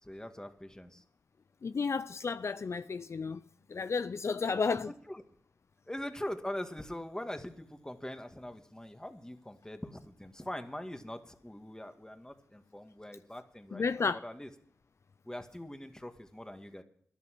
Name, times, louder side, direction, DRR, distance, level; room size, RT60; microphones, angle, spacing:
voice 1, 0.0-1.0 4.4-5.2 5.9-14.5 15.2-16.8, left 1 dB, 10° left, 1.9 m, -42 dB
voice 2, 1.6-3.4 3.7-4.9 13.7-14.2, left 5 dB, 60° left, 0.4 m, -32 dB
13.0 x 11.0 x 6.0 m
cardioid pair, 40°, 5 cm